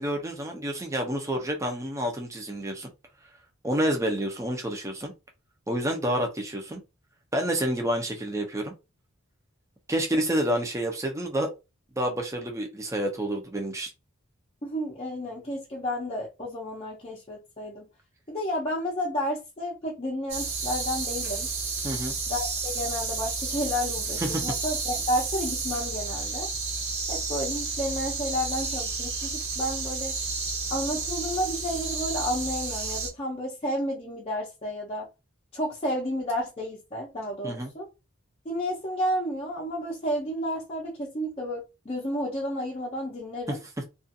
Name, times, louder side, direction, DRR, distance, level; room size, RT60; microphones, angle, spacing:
voice 1, 0.0-2.9 3.6-5.1 5.7-6.8 7.3-8.7 9.9-11.5 12.0-13.9 21.8-22.1 24.2-24.4 37.4-37.7 43.5-43.6, right 1 dB, 15° right, 0.5 m, -28 dB
voice 2, 14.6-17.9 18.3-21.5 22.3-26.5 27.1-30.1 30.7-35.1 35.5-37.9 38.4-43.6, equal, 30° left, 0.6 m, -31 dB
sound 1, 20.3-33.1, right 4 dB, 60° right, 1.2 m, -31 dB
2.4 x 2.4 x 2.7 m
head